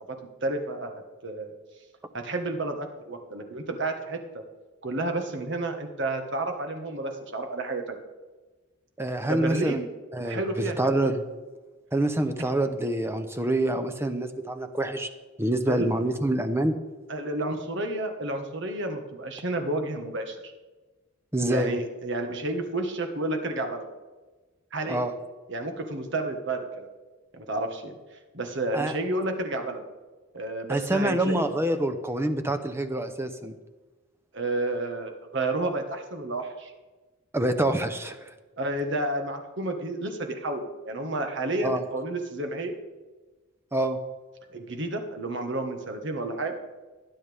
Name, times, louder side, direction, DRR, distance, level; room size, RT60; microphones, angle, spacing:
voice 1, 0.4-1.5 2.1-4.4 4.8-8.0 9.3-9.9 10.2-10.8 15.7-15.9 17.1-20.5 21.4-23.9 24.7-25.0 25.5-26.9 27.3-29.8 30.3-31.5 34.3-36.7 38.6-42.7 44.5-46.5, right 2 dB, 55° right, 5 dB, 1.6 m, -31 dB
voice 2, 9.0-9.8 10.1-11.2 11.9-15.1 15.4-16.8 21.3-21.8 24.9-25.1 28.7-28.9 30.7-33.5 37.3-38.3 41.6-41.8 43.7-44.0, right 1 dB, 10° right, 8 dB, 0.8 m, -26 dB
19.0 x 10.5 x 3.6 m, 1.2 s
head